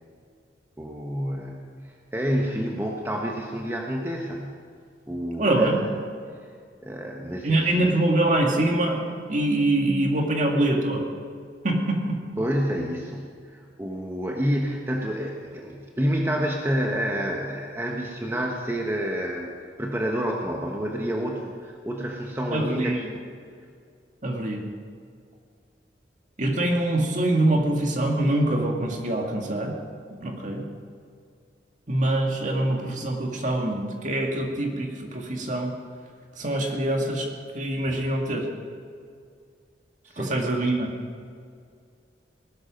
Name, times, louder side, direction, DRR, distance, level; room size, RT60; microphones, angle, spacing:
voice 1, 0.8-4.6 5.1-5.9 6.8-8.0 12.4-19.5 19.8-23.0 40.1-40.3, equal, 15° right, 0 dB, 1.2 m, -29 dB
voice 2, 5.4-5.8 7.4-11.0 11.6-12.2 22.5-23.0 24.2-24.6 26.4-29.7 30.2-30.6 31.9-35.7 36.4-37.3 37.5-38.5 40.2-40.9, right 1 dB, 45° right, 1 dB, 2.2 m, -24 dB
19.0 x 12.5 x 5.3 m, 2.2 s
head